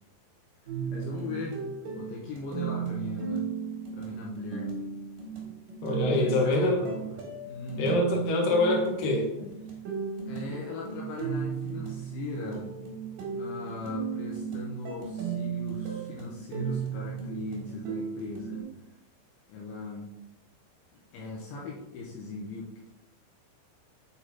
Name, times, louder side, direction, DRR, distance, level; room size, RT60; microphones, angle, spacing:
sound 1, 0.7-18.6, right 7 dB, 60° right, 2.5 m, -35 dB
voice 1, 0.9-1.6 2.0-3.5 3.9-4.7 6.0-7.2 7.5-8.2 10.3-12.7 13.4-18.7 19.5-20.1 20.9-22.9, left 3 dB, 75° left, -2 dB, 3.2 m, -39 dB
voice 2, 5.8-6.8 7.8-9.5, left 2 dB, 55° left, -2 dB, 2.7 m, -25 dB
8.5 x 4.0 x 5.6 m, 0.89 s
omnidirectional pair, 5.8 m